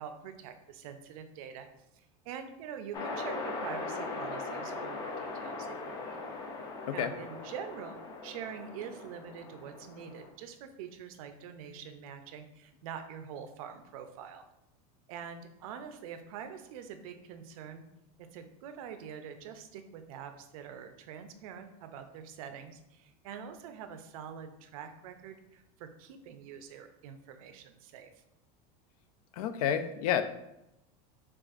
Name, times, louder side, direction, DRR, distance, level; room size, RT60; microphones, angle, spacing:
voice 1, 0.0-1.7 1.9-6.2 6.9-8.0 8.2-14.4 15.1-17.8 18.2-28.1, right 7 dB, 65° right, 8 dB, 0.5 m, -45 dB
sound 1, 2.9-10.3, left 3 dB, 20° left, 0.4 m, -40 dB
voice 2, 29.3-30.2, left 9 dB, 80° left, 10 dB, 0.4 m, -29 dB
6.1 x 2.4 x 2.4 m, 0.86 s
supercardioid pair, 170°, 19 cm